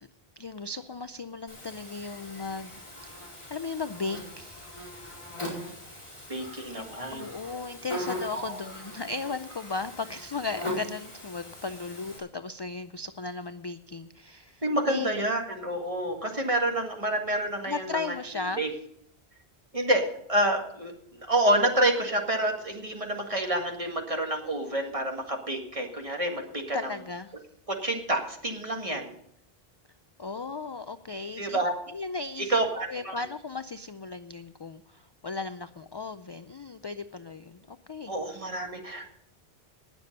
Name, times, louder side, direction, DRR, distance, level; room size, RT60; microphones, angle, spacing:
voice 1, 0.4-2.7 3.0-4.7 6.7-14.6 14.9-15.3 17.6-18.7 26.7-27.3 30.2-31.6 31.9-38.1, left 4 dB, 45° left, 11 dB, 0.3 m, -36 dB
Buzz, 1.5-12.2, left 1 dB, 30° left, 4.8 m, -40 dB
voice 2, 6.3-7.3 8.3-8.6 14.6-18.7 19.7-26.9 27.7-29.1 31.4-31.7 32.4-33.2 38.1-39.1, right 1 dB, 35° right, 2 dB, 1.9 m, -28 dB
19.5 x 6.9 x 5.4 m, 0.72 s
omnidirectional pair, 1.0 m